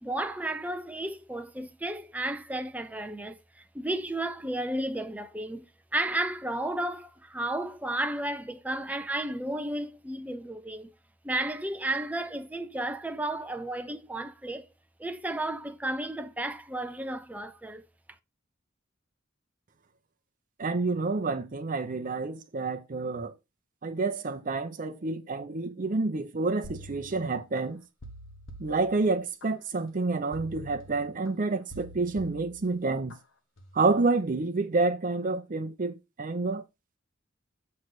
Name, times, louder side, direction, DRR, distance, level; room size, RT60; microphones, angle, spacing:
voice 1, 0.0-5.7 5.9-10.9 11.2-14.7 15.0-17.8, right 1 dB, 10° right, 0.7 m, -33 dB
voice 2, 20.6-23.3 23.8-27.8 28.6-33.1 33.7-36.6, right 3 dB, 45° right, 0.7 m, -29 dB
sound 1, 26.6-27.6 28.0-29.5 30.3-31.3 31.7-33.2 33.6-33.9, right 1 dB, 80° left, 1.2 m, -46 dB
7.8 x 3.2 x 6.0 m
head